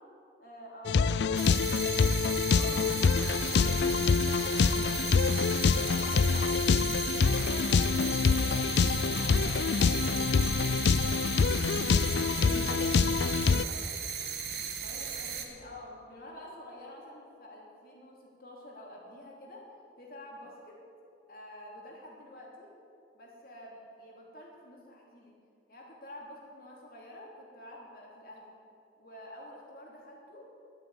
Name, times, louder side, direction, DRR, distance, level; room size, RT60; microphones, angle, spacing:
voice 1, 0.4-1.4 5.8-6.5 7.0-11.2 12.6-13.1 14.8-19.7 20.0-20.8 21.3-22.7 23.1-25.3 25.7-28.6 29.0-30.5, left 1 dB, 50° left, -2 dB, 3.1 m, -49 dB
sound 1, 0.9-13.6, left 5 dB, 75° left, 0.4 m, -26 dB
sound 2, 1.4-15.5, right 7 dB, 65° right, 1.5 m, -36 dB
voice 2, 2.4-6.5 12.4-13.9, right 1 dB, 80° right, 2 dB, 2.2 m, -47 dB
12.0 x 9.5 x 8.5 m, 2.6 s
head